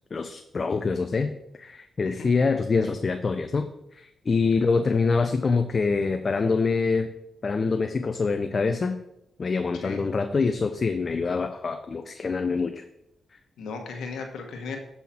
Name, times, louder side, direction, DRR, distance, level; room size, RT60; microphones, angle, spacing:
voice 1, 0.1-1.3 1.6-7.1 7.4-9.0 9.4-12.8, left 4 dB, 45° left, 8 dB, 0.5 m, -25 dB
voice 2, 9.7-10.1 13.6-14.8, left 4 dB, 85° left, 4 dB, 1.2 m, -36 dB
7.3 x 5.6 x 4.3 m, 0.84 s
cardioid pair, 65°, 0 cm